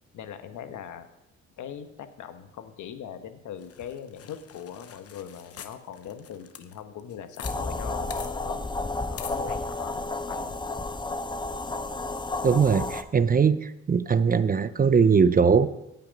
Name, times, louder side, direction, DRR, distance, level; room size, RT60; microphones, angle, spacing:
voice 1, 0.1-1.1 1.6-8.6 9.1-10.6, left 9 dB, 75° left, 9 dB, 1.2 m, -40 dB
sound 1, 3.6-7.6 7.8-7.9 8.1-8.3 9.2-9.4, left 8 dB, 50° left, 0.9 m, -44 dB
sound 2, 7.4-13.0, left 2 dB, 15° left, 0.7 m, -32 dB
voice 2, 12.4-15.7, right 6 dB, 30° right, 14 dB, 0.5 m, -21 dB
17.5 x 5.8 x 5.3 m, 0.91 s
cardioid pair, 90°, 30 cm